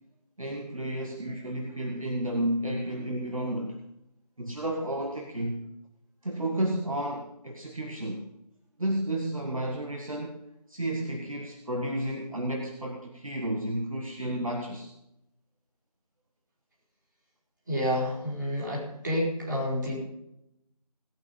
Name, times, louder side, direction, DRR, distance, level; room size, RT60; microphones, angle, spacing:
voice 1, 0.4-3.8 4.4-5.7 6.2-8.2 8.8-10.4 10.7-14.9, right 1 dB, 55° right, 2 dB, 1.7 m, -32 dB
voice 2, 17.7-20.1, equal, 30° right, -5 dB, 4.9 m, -29 dB
18.5 x 8.8 x 5.4 m, 0.84 s
figure-of-eight pair, 170°, 21 cm